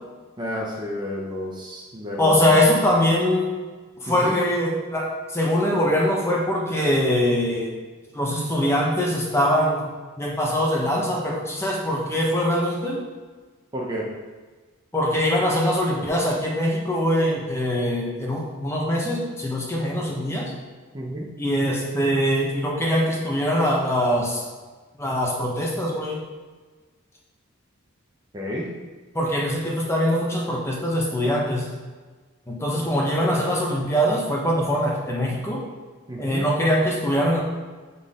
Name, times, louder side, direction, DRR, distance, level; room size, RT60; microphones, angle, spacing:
voice 1, 0.4-2.6 4.1-4.3 13.7-14.1 20.9-21.2 28.3-28.7 36.1-36.4, equal, 20° right, -3 dB, 0.7 m, -30 dB
voice 2, 2.2-3.5 4.0-7.8 8.1-9.9 10.2-13.0 14.9-20.5 21.4-24.4 25.0-26.2 29.1-31.7 32.5-35.6 36.2-37.4, equal, 10° left, -3 dB, 1.0 m, -22 dB
7.2 x 4.2 x 3.7 m, 1.4 s
head